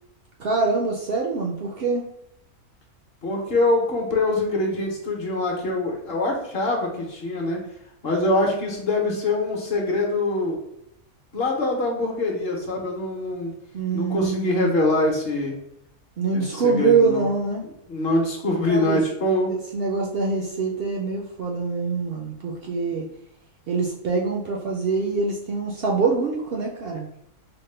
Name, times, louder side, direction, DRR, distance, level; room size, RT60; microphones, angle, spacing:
voice 1, 0.4-2.0 13.7-14.7 16.2-17.7 18.7-19.0 19.5-23.1 23.7-27.1, right 4 dB, 65° right, 0 dB, 0.6 m, -24 dB
voice 2, 3.2-7.6 8.0-10.6 11.3-13.5 13.9-15.5 16.3-17.3 17.9-19.5, left 2 dB, 50° left, 0 dB, 0.9 m, -24 dB
4.2 x 2.1 x 3.2 m, 0.80 s
omnidirectional pair, 1.4 m